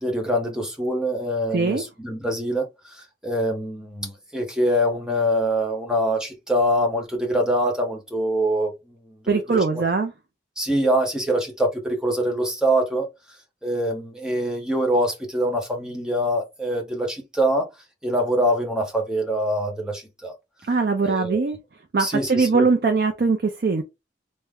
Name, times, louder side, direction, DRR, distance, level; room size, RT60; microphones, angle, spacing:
voice 1, 0.0-8.7 9.1-9.8 10.6-13.1 13.6-17.7 18.0-20.3 21.0-21.4 22.0-22.7, equal, 5° right, 0.7 m, -24 dB
voice 2, 1.5-1.8 9.3-10.1 20.7-21.6 21.9-23.8, right 4 dB, 60° right, 0.4 m, -21 dB
3.3 x 2.1 x 3.5 m
head